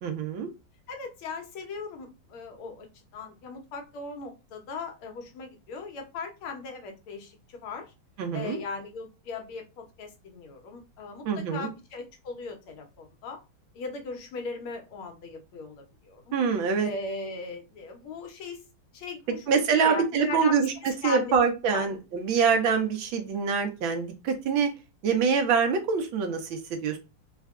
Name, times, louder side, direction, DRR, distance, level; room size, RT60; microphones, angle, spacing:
voice 1, 0.0-0.5 8.2-8.6 11.2-11.7 16.3-16.9 19.5-20.7 21.0-24.7 25.0-27.0, right 6 dB, 70° right, 5 dB, 1.5 m, -25 dB
voice 2, 0.9-7.9 8.3-13.4 13.7-16.4 16.8-18.6 18.9-20.6 21.0-21.4 21.7-21.9, left 4 dB, 85° left, 3 dB, 1.9 m, -38 dB
4.4 x 2.3 x 3.6 m, 0.27 s
omnidirectional pair, 2.3 m